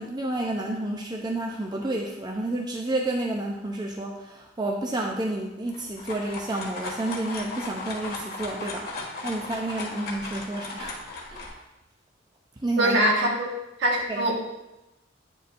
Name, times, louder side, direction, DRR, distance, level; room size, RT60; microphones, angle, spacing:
voice 1, 0.0-11.0 11.3-11.6 12.6-13.0 14.1-14.3, right 1 dB, 20° right, 0 dB, 0.6 m, -30 dB
sound 1, 5.7-11.5, left 2 dB, 55° left, 1.9 m, -36 dB
voice 2, 12.8-13.5 13.8-14.5, right 1 dB, 65° right, -1 dB, 1.5 m, -23 dB
9.1 x 6.8 x 2.6 m, 0.96 s
head